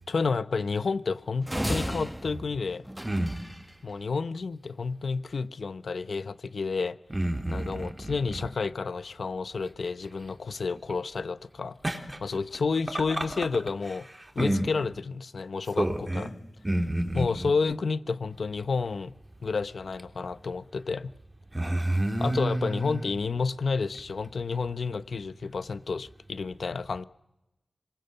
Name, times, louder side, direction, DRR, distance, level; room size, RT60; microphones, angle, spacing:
voice 1, 0.1-2.8 3.8-7.0 7.5-11.8 12.2-14.1 14.3-16.3 17.1-19.1 19.4-21.1 22.2-27.0, left 4 dB, 80° left, 1.0 m, -30 dB
sound 1, 1.5-3.7, equal, 5° right, 1.2 m, -33 dB
voice 2, 3.0-3.4 7.1-8.1 11.8-12.2 13.1-13.2 14.4-14.7 15.8-16.3 16.6-17.5 21.5-23.1, right 1 dB, 20° right, 3.7 m, -28 dB
26.5 x 22.0 x 8.0 m
wide cardioid pair, 80°, 0 cm